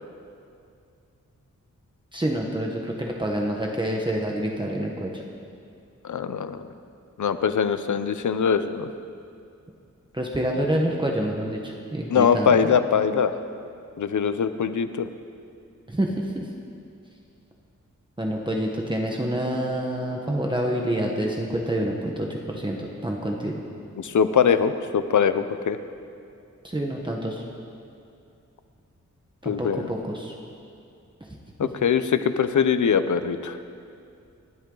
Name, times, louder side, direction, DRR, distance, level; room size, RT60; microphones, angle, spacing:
voice 1, 2.1-5.2 10.1-12.7 15.9-16.5 18.2-23.6 26.6-27.4 29.4-30.3 31.2-31.4, right 1 dB, 15° right, -1 dB, 1.3 m, -27 dB
voice 2, 6.0-6.7 7.2-8.9 12.1-13.3 14.0-15.1 24.0-25.8 29.4-29.9 31.6-33.6, left 7 dB, 75° left, 11 dB, 0.8 m, -22 dB
28.0 x 12.0 x 4.0 m, 2.5 s
wide cardioid pair, 145°, 30 cm